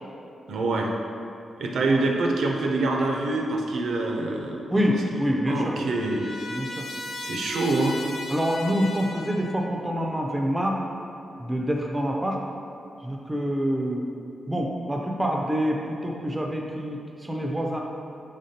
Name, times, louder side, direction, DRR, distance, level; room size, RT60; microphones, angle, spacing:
voice 1, 0.5-0.9 1.6-4.8 5.1-5.2 5.5-6.3 7.2-8.0, right 2 dB, 80° right, 1 dB, 0.4 m, -25 dB
voice 2, 4.7-5.7 6.5-6.9 8.3-10.8 11.4-12.4 13.0-14.0 14.5-17.8, equal, 10° right, 0 dB, 0.3 m, -26 dB
Trumpet, 5.0-9.7, left 2 dB, 75° left, 0.4 m, -38 dB
5.1 x 3.5 x 2.8 m, 2.5 s
wide cardioid pair, 170°, 0 cm